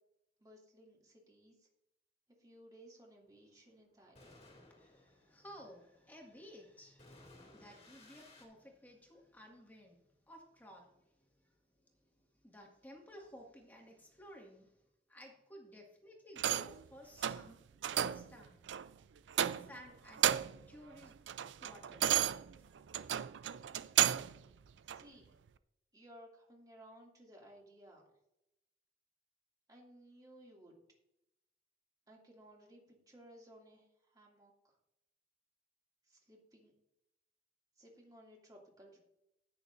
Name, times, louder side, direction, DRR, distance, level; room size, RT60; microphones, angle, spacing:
voice 1, 0.4-1.7 2.4-4.4 24.8-25.3 25.9-28.1 29.7-30.8 32.1-34.7 36.0-36.7 37.8-39.0, equal, 20° right, -2 dB, 2.5 m, -59 dB
sound 1, 3.3-8.4, left 2 dB, 35° left, 2.3 m, -61 dB
voice 2, 4.8-11.3 12.4-14.8 15.1-17.6 18.0-18.7 19.6-20.2 20.7-21.1 21.6-22.1, equal, 10° left, -1 dB, 1.9 m, -56 dB
sound 2, 16.4-16.8 17.2-17.5 17.8-18.3 18.7-18.9 19.3-19.8 20.1-20.7 21.0-24.4 24.9-25.0, right 10 dB, 85° right, 0.4 m, -33 dB
18.0 x 6.6 x 2.6 m, 0.84 s
head